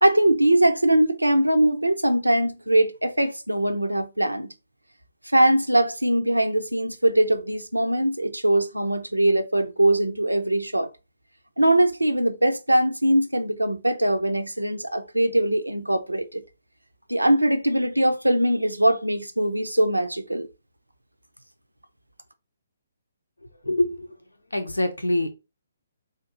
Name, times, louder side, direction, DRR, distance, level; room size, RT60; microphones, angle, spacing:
voice 1, 0.0-4.5 5.3-10.9 11.6-16.4 17.1-20.5, right 1 dB, 85° right, 0.6 m, -21 dB
voice 2, 23.6-24.1 24.5-25.3, left 1 dB, 80° left, 0.6 m, -24 dB
3.9 x 2.6 x 3.8 m
figure-of-eight pair, 130°, 0 cm